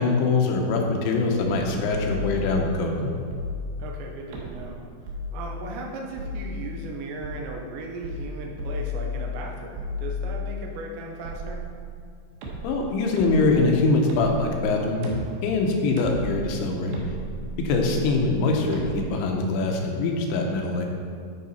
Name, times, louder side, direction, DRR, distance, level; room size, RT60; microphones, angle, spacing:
voice 1, 0.0-3.1 12.6-15.1 15.4-17.0 17.6-20.9, left 3 dB, 85° left, 1 dB, 3.2 m, -23 dB
sound 1, 1.9-2.7 3.3-4.0 4.3-4.8 5.1-5.7 6.2-6.8 7.2-7.4 8.0-8.3 8.6-9.4 9.8-10.6 11.3-12.0 12.4-19.0, left 2 dB, 70° right, 3.0 m, -34 dB
voice 2, 3.8-4.9 5.3-11.6, right 2 dB, 90° right, 0 dB, 3.2 m, -37 dB
12.5 x 5.1 x 4.2 m, 2.2 s
omnidirectional pair, 5.1 m